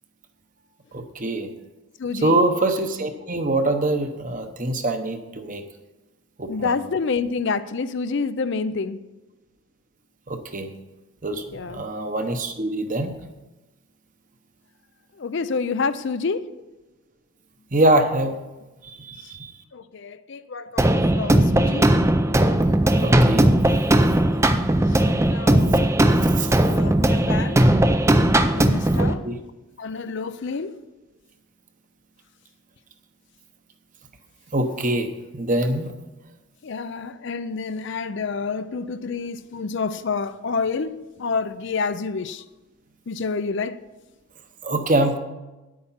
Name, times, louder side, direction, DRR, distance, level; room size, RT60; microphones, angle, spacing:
voice 1, 0.9-1.5 2.1-5.6 6.4-6.7 10.3-10.7 11.2-13.1 17.7-18.4 18.8-19.5 23.0-23.5 26.4-26.6 29.0-29.4 34.5-35.9 44.6-45.2, right 2 dB, 35° right, 0.9 m, -24 dB
voice 2, 2.0-2.4 6.5-9.0 11.5-11.8 15.2-16.4 19.7-21.9 25.3-25.8 26.7-27.6 28.5-29.2 29.8-30.7 36.6-40.9 41.2-42.4 43.1-43.8, left 4 dB, 55° left, 0.4 m, -28 dB
sound 1, 20.8-29.1, right 1 dB, 15° right, 0.4 m, -18 dB
10.0 x 8.6 x 5.7 m
head